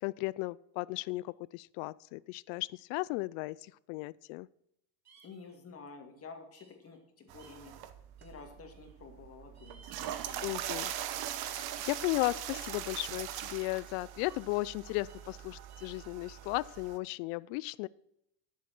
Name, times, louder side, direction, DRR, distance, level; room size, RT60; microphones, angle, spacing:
voice 1, 0.0-4.5 10.4-10.9 11.3-17.9, left 21 dB, 75° left, 21 dB, 0.6 m, -35 dB
sound 1, 5.0-5.6 6.5-7.0 7.4-7.7 8.2-8.9 9.5-10.8 11.1-12.4 13.3-13.7 14.3-14.6 15.1-15.3 15.7-16.5, right 5 dB, 35° right, 3.1 m, -61 dB
voice 2, 5.2-7.7 8.2-10.6, left 4 dB, 30° left, 4 dB, 2.3 m, -51 dB
sound 2, 7.3-17.0, right 11 dB, 55° right, 1.1 m, -41 dB
11.5 x 7.5 x 6.1 m, 0.78 s
cardioid pair, 135°, 46 cm